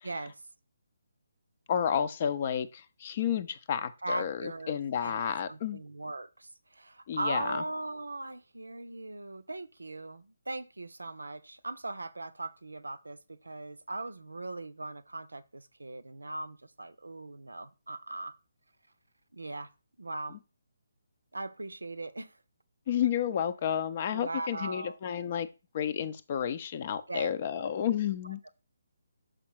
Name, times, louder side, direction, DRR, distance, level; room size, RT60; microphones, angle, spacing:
voice 1, 0.0-0.4 4.0-5.2 5.5-18.4 19.3-19.7 20.0-20.4 21.3-22.4 24.1-25.0 27.1-27.3, right 2 dB, 80° right, 0.5 m, -39 dB
voice 2, 1.7-5.8 7.1-7.6 22.9-25.5 25.7-28.4, left 9 dB, 35° left, 0.6 m, -31 dB
6.3 x 5.1 x 4.6 m
figure-of-eight pair, 145°, 0 cm